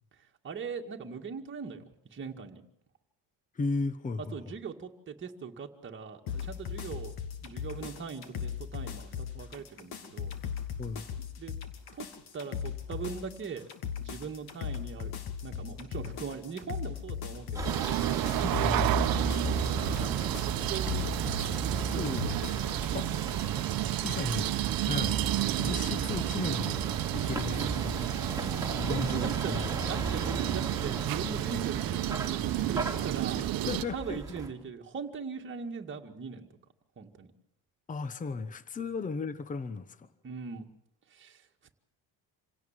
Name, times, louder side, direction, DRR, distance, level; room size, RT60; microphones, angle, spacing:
voice 1, 0.4-1.8 2.1-2.6 4.3-7.1 7.4-10.4 11.3-11.6 11.9-12.1 12.3-13.6 14.0-15.1 15.4-21.2 21.5-22.2 22.9-23.2 28.7-36.5 37.0-37.3 38.8-38.9 40.2-40.6 41.1-41.4, right 5 dB, 30° right, 2 dB, 2.1 m, -41 dB
voice 2, 3.5-4.5 10.8-11.0 18.4-18.9 22.0-22.6 22.9-23.1 24.0-24.5 24.8-25.2 25.6-28.1 28.8-29.7 33.4-34.2 37.9-40.1, left 4 dB, 20° left, 14 dB, 1.0 m, -35 dB
sound 1, 6.3-22.9, left 8 dB, 65° left, 2.5 m, -39 dB
Vehicle, 17.5-34.5, right 3 dB, 10° right, 3.4 m, -36 dB
sound 2, 17.6-33.8, right 14 dB, 60° right, 1.0 m, -31 dB
27.0 x 17.0 x 7.5 m, 0.78 s
cardioid pair, 140°, 40 cm